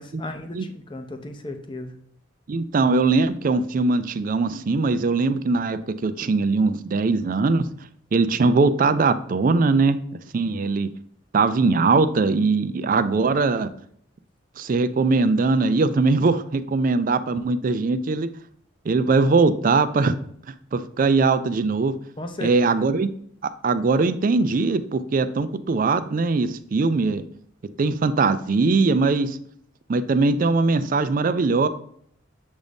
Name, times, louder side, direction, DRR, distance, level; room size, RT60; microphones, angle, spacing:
voice 1, 0.0-1.9 22.2-22.9, left 1 dB, 25° left, 6 dB, 0.7 m, -35 dB
voice 2, 2.5-7.7 8.1-10.0 10.3-10.9 11.3-13.7 14.6-18.3 18.9-20.2 20.7-21.9 22.4-23.1 23.6-27.2 27.8-29.4 29.9-31.7, right 3 dB, 45° right, 12 dB, 0.4 m, -21 dB
7.2 x 2.6 x 5.1 m, 0.66 s
head